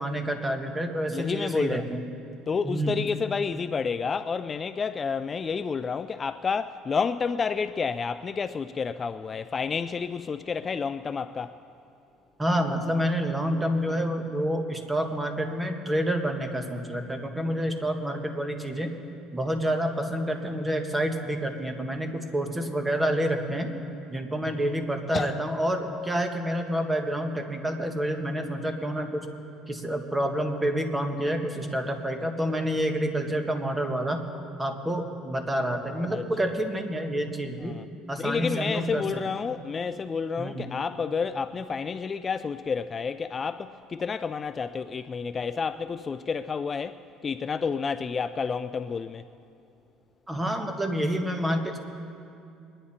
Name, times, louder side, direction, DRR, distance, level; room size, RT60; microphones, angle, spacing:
voice 1, 0.0-2.0 2.6-3.0 12.4-19.0 19.3-23.7 24.1-29.3 29.7-34.2 34.6-37.7 38.1-39.2 40.4-40.6 50.3-51.8, equal, 15° right, 1.5 m, -28 dB
voice 2, 1.1-1.8 2.5-11.6 25.1-25.3 36.1-36.5 37.6-37.9 38.2-49.2, left 5 dB, 30° left, 0.3 m, -30 dB
23.0 x 10.0 x 4.3 m
supercardioid pair, 95°, 0 cm